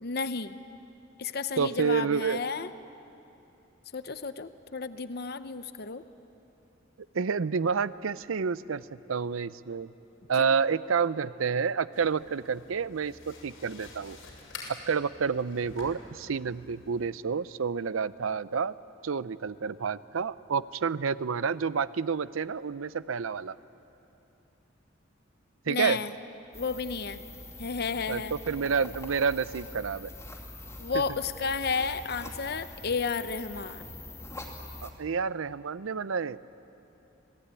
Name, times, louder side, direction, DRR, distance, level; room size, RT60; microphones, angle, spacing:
voice 1, 0.0-0.6 1.2-2.7 3.9-6.0 10.4-10.5 25.7-26.1 26.5-27.2 27.6-28.3 30.8-33.8, left 5 dB, 50° left, 12 dB, 0.7 m, -32 dB
voice 2, 1.6-2.5 7.1-9.9 10.3-14.2 14.9-18.7 19.0-23.6 25.7-26.0 28.1-30.1 34.8-36.4, right 5 dB, 90° right, 17 dB, 0.6 m, -29 dB
sound 1, 11.9-17.1, left 3 dB, 85° left, 6.1 m, -48 dB
sound 2, 26.5-34.9, left 2 dB, 15° left, 2.6 m, -44 dB
26.5 x 18.0 x 9.8 m, 2.9 s
head